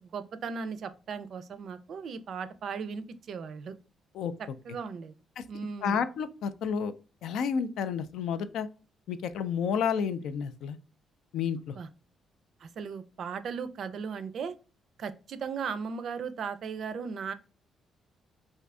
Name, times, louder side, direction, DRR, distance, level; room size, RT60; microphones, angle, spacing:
voice 1, 0.0-3.8 4.6-5.1 5.5-6.0 11.7-11.9 12.6-14.5 15.0-17.3, right 6 dB, 60° right, 11 dB, 0.4 m, -37 dB
voice 2, 5.8-6.9 7.2-8.7 9.1-10.8 11.3-11.8, left 7 dB, 80° left, 11 dB, 0.3 m, -30 dB
2.6 x 2.5 x 3.2 m, 0.33 s
cardioid pair, 90°, 0 cm